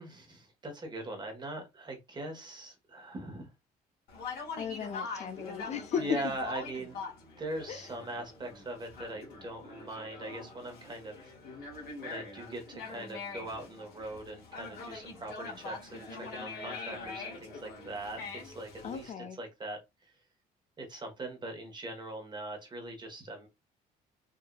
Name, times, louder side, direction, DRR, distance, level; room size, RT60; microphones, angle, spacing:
voice 1, 0.0-3.5 6.0-7.0 7.4-20.1 20.8-23.5, right 1 dB, 25° right, 1.2 m, -41 dB
Conversation, 4.1-19.1, left 4 dB, 65° left, 1.5 m, -43 dB
voice 2, 4.6-6.0 7.7-7.9 18.8-19.4, left 7 dB, 40° left, 0.5 m, -37 dB
3.7 x 2.6 x 2.2 m
cardioid pair, 110°, 17 cm